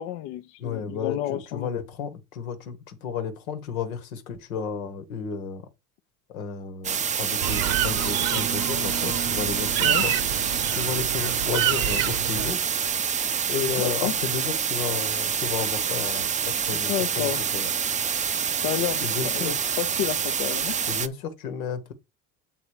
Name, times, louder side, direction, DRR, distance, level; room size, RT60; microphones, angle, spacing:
voice 1, 0.0-1.7 9.8-10.0 13.8-14.1 16.9-17.4 18.6-19.4 19.8-20.8, left 13 dB, 65° left, 0.7 m, -30 dB
voice 2, 0.6-5.6 6.3-10.1 10.7-12.6 13.5-17.7 19.0-19.6 20.9-21.9, left 6 dB, 85° left, 1.3 m, -33 dB
sound 1, 6.8-21.1, right 7 dB, 20° right, 0.4 m, -27 dB
sound 2, 7.4-12.5, right 11 dB, 55° right, 0.8 m, -28 dB
7.4 x 3.8 x 4.7 m
hypercardioid pair, 80°, 41 cm